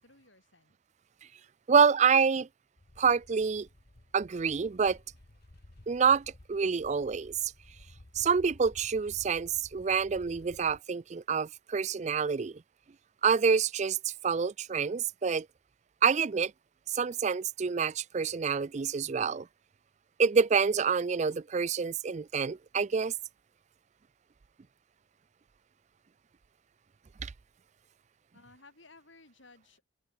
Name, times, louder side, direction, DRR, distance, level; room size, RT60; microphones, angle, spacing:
voice 1, 0.0-0.8 28.3-29.8, left 3 dB, 70° left, 7.8 m, -57 dB
voice 2, 1.7-2.5 3.0-3.7 4.1-5.0 5.9-7.5 8.2-12.6 13.2-15.5 16.0-16.5 16.9-19.5 20.2-23.1 27.2-27.3, right 6 dB, 35° right, 0.4 m, -27 dB
sound 1, 2.8-10.8, left 1 dB, 50° left, 1.5 m, -55 dB
open air
head